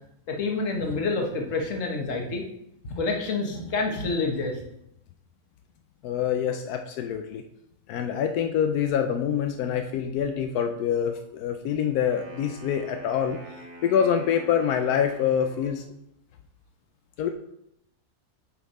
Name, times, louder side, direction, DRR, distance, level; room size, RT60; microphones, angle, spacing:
voice 1, 0.3-2.4 2.9-4.6, left 3 dB, 60° left, 2 dB, 1.5 m, -28 dB
voice 2, 6.0-7.4 7.9-13.4 13.8-15.8 17.2-17.3, left 8 dB, 90° left, 6 dB, 1.1 m, -25 dB
Wind instrument woodwind instrument, 11.9-15.9, equal, 50° right, 1.9 m, -46 dB
7.5 x 5.2 x 4.1 m, 0.80 s
omnidirectional pair, 1.6 m